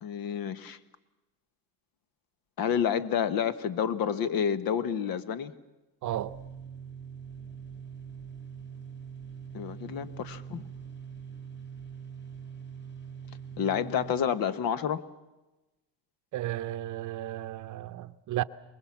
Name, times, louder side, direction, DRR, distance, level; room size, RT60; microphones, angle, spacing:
voice 1, 0.0-0.8 2.6-5.5 9.5-10.7 13.6-15.0, left 8 dB, 60° left, 1.2 m, -29 dB
sound 1, 6.0-14.3, right 7 dB, 30° left, 4.0 m, -43 dB
voice 2, 6.0-6.4 16.3-18.4, right 14 dB, 50° right, 0.7 m, -33 dB
24.0 x 21.5 x 7.3 m
cardioid pair, 130°, 39 cm